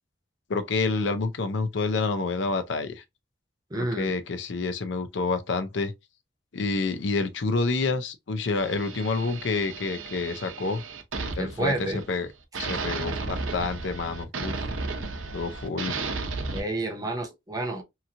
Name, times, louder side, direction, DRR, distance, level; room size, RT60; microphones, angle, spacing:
voice 1, 0.5-3.0 3.7-5.9 6.5-10.8 11.4-12.3 12.6-14.5 15.3-15.9, left 3 dB, 65° left, 0.5 m, -28 dB
voice 2, 3.7-4.2 11.4-12.0 16.5-17.8, right 1 dB, 20° right, 0.5 m, -30 dB
sound 1, 8.6-12.2 12.5-16.6, right 3 dB, 90° right, 0.6 m, -34 dB
2.8 x 2.7 x 2.5 m
head